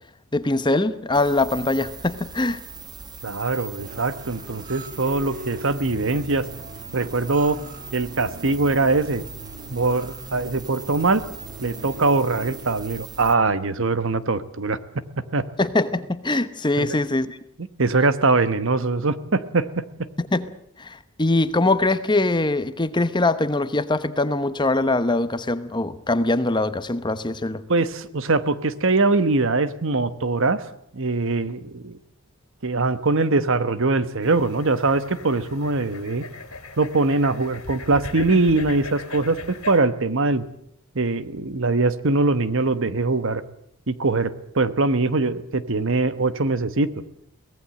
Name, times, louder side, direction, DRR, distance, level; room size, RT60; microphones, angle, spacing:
voice 1, 0.3-2.6 15.6-17.4 20.2-20.5 20.8-27.6, left 2 dB, 20° left, 13 dB, 0.9 m, -22 dB
sound 1, 1.1-13.4, right 4 dB, 20° right, 1.4 m, -41 dB
voice 2, 3.2-6.5 6.9-7.6 7.9-9.2 9.7-11.2 11.6-14.8 15.3-15.4 16.8-17.0 17.8-20.1 27.7-30.6 30.9-32.0 32.6-36.2 36.8-40.4 40.9-43.4 43.9-46.9, right 3 dB, 60° right, 14 dB, 1.1 m, -22 dB
sound 2, 3.8-12.7, right 2 dB, 35° right, 1.5 m, -41 dB
sound 3, 34.2-39.8, left 3 dB, 70° left, 2.8 m, -39 dB
23.5 x 18.0 x 7.6 m, 0.69 s
head